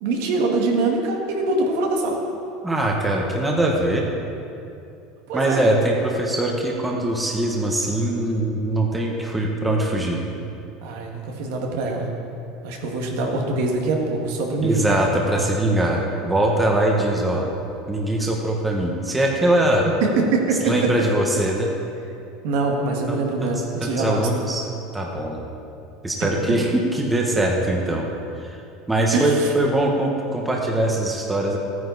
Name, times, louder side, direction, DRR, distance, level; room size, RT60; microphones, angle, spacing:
voice 1, 0.0-2.2 5.3-5.6 10.8-12.1 12.6-15.0 20.0-20.6 22.4-24.3 26.2-26.4 29.1-29.5, right 3 dB, 75° right, 0 dB, 1.8 m, -23 dB
voice 2, 2.6-4.0 5.3-10.2 14.6-17.4 17.9-19.9 20.6-21.7 23.1-23.2 23.4-23.5 23.8-24.6 24.9-25.4 26.0-28.1 28.4-28.6 28.9-31.6, right 1 dB, 10° right, -1 dB, 1.2 m, -22 dB
14.5 x 9.5 x 4.1 m, 2.7 s
cardioid pair, 155°, 0 cm